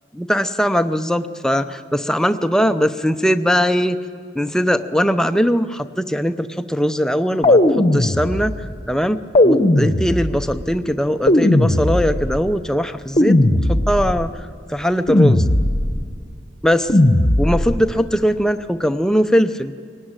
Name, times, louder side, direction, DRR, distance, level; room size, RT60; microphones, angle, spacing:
voice 1, 0.1-4.0 4.3-15.5 16.6-16.9 17.4-19.7, equal, 5° left, 9 dB, 0.6 m, -20 dB
sound 1, 7.4-8.7 9.4-10.5 11.3-12.4 13.2-14.2 15.1-16.0 16.9-17.8, left 1 dB, 30° left, 1.0 m, -16 dB
23.5 x 19.0 x 8.9 m, 2.2 s
head